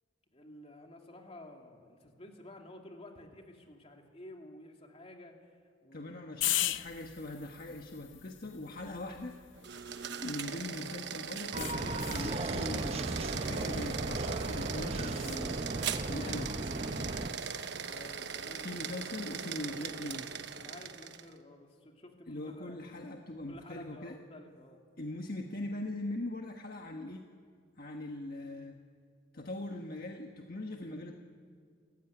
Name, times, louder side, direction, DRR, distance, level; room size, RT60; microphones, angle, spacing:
voice 1, 0.3-5.5 5.8-6.2 17.7-18.7 20.6-22.9 23.5-24.8, left 1 dB, 30° left, 2 dB, 2.7 m, -52 dB
voice 2, 5.9-9.4 10.2-15.6 16.1-16.5 18.6-20.3 22.3-24.2 25.0-27.3 27.8-28.8 29.3-31.1, left 1 dB, 50° left, 3 dB, 1.4 m, -41 dB
sound 1, 6.4-10.8 11.6-12.3 15.1-15.4, left 14 dB, 85° left, 0.8 m, -38 dB
sound 2, 9.5-21.3, right 6 dB, 65° right, 1.1 m, -40 dB
sound 3, 11.5-17.3, right 2 dB, 35° right, 0.9 m, -36 dB
29.0 x 15.0 x 9.9 m, 2.1 s
head